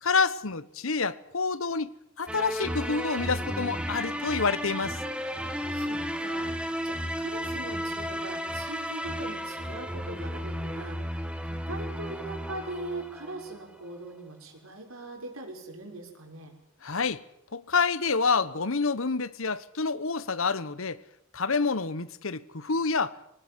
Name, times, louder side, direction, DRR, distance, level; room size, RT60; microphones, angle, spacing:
voice 1, 0.0-5.0 16.8-17.2 17.5-21.0 21.3-23.2, left 4 dB, 70° left, 1.1 m, -28 dB
sound 1, 2.3-13.6, equal, 5° right, 1.6 m, -33 dB
voice 2, 5.7-16.5, right 2 dB, 75° right, 6.2 m, -41 dB
24.0 x 19.0 x 9.7 m
head